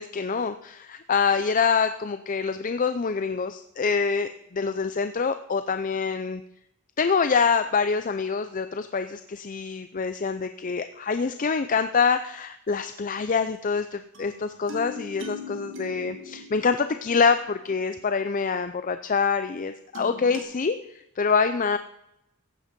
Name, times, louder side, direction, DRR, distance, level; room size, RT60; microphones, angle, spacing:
voice 1, 0.0-6.4 7.0-21.8, left 5 dB, 35° left, 10 dB, 0.5 m, -25 dB
sound 1, 14.1-18.1 19.9-20.4, left 2 dB, 60° right, 2.1 m, -41 dB
15.0 x 9.1 x 5.2 m, 0.81 s
head